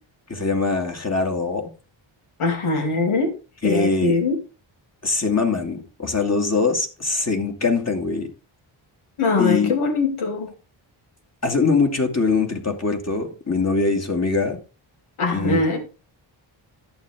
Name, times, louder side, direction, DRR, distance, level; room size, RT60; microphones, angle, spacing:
voice 1, 0.3-1.7 3.6-4.2 5.0-8.3 9.4-9.7 11.4-14.6 15.3-15.6, left 4 dB, 30° left, 2.3 m, -22 dB
voice 2, 2.4-3.3 3.6-4.4 9.2-10.5 15.2-15.8, left 3 dB, 85° left, 2.8 m, -22 dB
11.0 x 8.8 x 3.5 m
wide cardioid pair, 95°, 49 cm